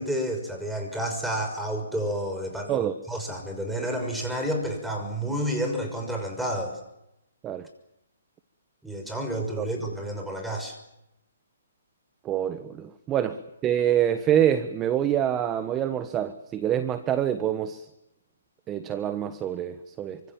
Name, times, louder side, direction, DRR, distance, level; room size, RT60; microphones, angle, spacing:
voice 1, 0.0-2.7 3.1-6.8 8.8-10.8, equal, ahead, 3 dB, 6.1 m, -30 dB
voice 2, 12.2-17.9 18.7-20.2, right 10 dB, 20° right, 11 dB, 1.3 m, -26 dB
28.5 x 25.5 x 7.4 m, 0.85 s
hypercardioid pair, 145°, 0 cm